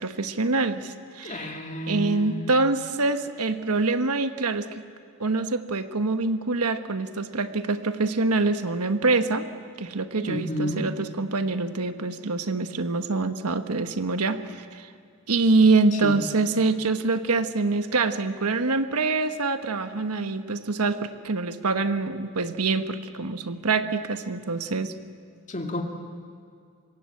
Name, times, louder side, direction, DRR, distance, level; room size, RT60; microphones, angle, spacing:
voice 1, 0.0-1.6 1.9-4.7 5.2-9.5 9.8-14.9 15.3-24.9, right 3 dB, 80° right, 9 dB, 1.3 m, -25 dB
voice 2, 1.2-2.5 10.2-10.9 16.0-16.2 25.5-25.8, left 1 dB, 35° left, 3 dB, 2.4 m, -31 dB
25.5 x 21.5 x 8.5 m, 2.4 s
head